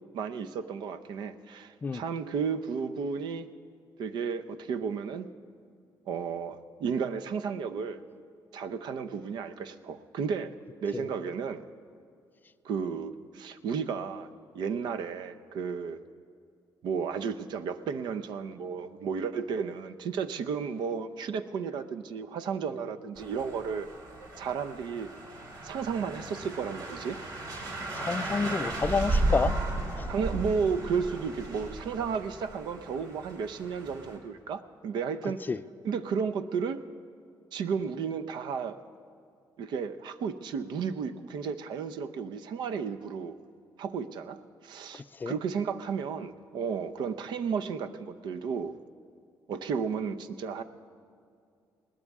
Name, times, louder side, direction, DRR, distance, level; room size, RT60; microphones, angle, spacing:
voice 1, 0.1-3.5 4.0-5.3 6.1-8.0 8.5-10.5 10.8-11.6 12.6-14.3 14.5-16.0 16.8-23.9 24.4-25.1 25.6-27.2 30.1-35.4 35.8-36.8 37.5-38.8 39.6-43.4 43.8-48.8 49.5-50.6, right 6 dB, 75° right, 11 dB, 0.7 m, -33 dB
sound 1, 23.2-34.2, right 2 dB, 55° right, 2.9 m, -35 dB
voice 2, 27.9-29.6 30.0-30.1 35.5-35.6 45.1-45.4, left 4 dB, 25° left, 13 dB, 0.4 m, -29 dB
21.0 x 18.0 x 3.6 m, 2.4 s
cardioid pair, 135°, 8 cm